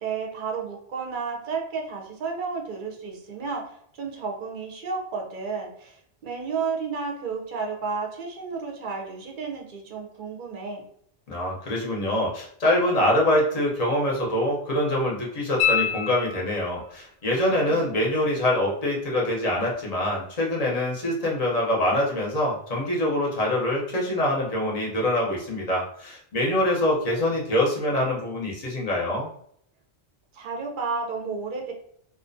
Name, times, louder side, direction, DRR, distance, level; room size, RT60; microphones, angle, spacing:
voice 1, 0.0-10.9 17.5-17.9 30.3-31.7, right 5 dB, 60° right, 1 dB, 0.6 m, -32 dB
voice 2, 11.3-29.3, left 1 dB, 40° left, -3 dB, 0.6 m, -24 dB
sound 1, 15.6-16.9 19.7-19.8, left 8 dB, 80° left, 0.9 m, -26 dB
2.4 x 2.1 x 2.5 m, 0.66 s
omnidirectional pair, 1.2 m